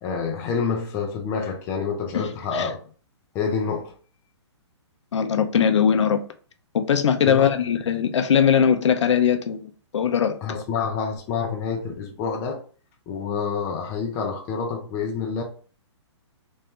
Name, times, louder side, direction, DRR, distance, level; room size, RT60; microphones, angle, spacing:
voice 1, 0.0-2.8 3.3-3.9 7.2-7.5 10.4-12.6 13.1-15.4, left 5 dB, 15° left, 0.5 m, -27 dB
voice 2, 2.1-2.7 5.1-6.2 6.7-10.4, left 8 dB, 75° left, 0.6 m, -20 dB
3.1 x 2.8 x 3.5 m
hypercardioid pair, 165°, 15 cm